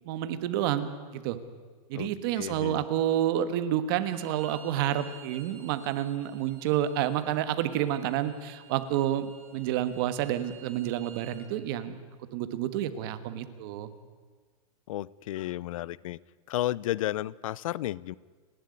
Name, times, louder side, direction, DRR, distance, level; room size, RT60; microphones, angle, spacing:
voice 1, 0.0-1.4 1.9-11.9 12.3-13.9, right 11 dB, 40° right, 11 dB, 1.4 m, -29 dB
voice 2, 2.4-2.8 14.9-16.2 16.5-18.1, left 14 dB, 65° left, 23 dB, 0.6 m, -32 dB
Bowed string instrument, 4.0-11.4, right 6 dB, 75° right, 5.5 m, -53 dB
29.5 x 12.0 x 9.8 m, 1.5 s
supercardioid pair, 180°, 18 cm